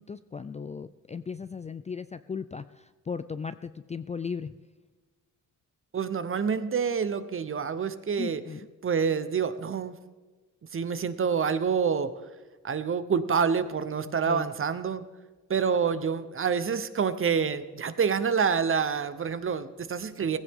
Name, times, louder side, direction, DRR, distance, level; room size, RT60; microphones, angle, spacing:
voice 1, 0.0-4.5 8.2-8.6 14.2-14.5, left 5 dB, 20° left, 12 dB, 0.3 m, -37 dB
voice 2, 5.9-8.4 8.8-10.0 10.7-12.1 12.6-15.0 15.5-20.4, right 6 dB, 40° right, 12 dB, 0.9 m, -27 dB
17.5 x 15.5 x 3.7 m, 1.3 s
cardioid pair, 105°, 33 cm